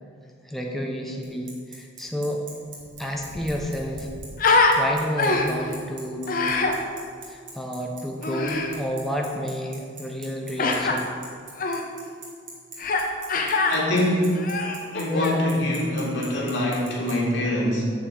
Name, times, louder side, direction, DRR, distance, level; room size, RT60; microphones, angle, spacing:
voice 1, 0.4-2.4 3.0-4.1 4.5-6.6 7.3-11.2, equal, ahead, -1 dB, 0.7 m, -30 dB
Bicycle, 1.2-17.1, right 5 dB, 85° right, 2.2 m, -41 dB
Human voice, 2.8-2.9 3.2-4.8 5.2-5.7 6.3-6.8 8.2-8.7 10.6-11.0 11.6-11.8 12.8-13.0 13.3-13.8 14.3-15.4, left 3 dB, 50° left, 0.8 m, -24 dB
voice 2, 13.7-14.4 14.9-17.8, left 1 dB, 85° left, -5 dB, 2.4 m, -24 dB
8.8 x 4.6 x 7.0 m, 2.2 s
head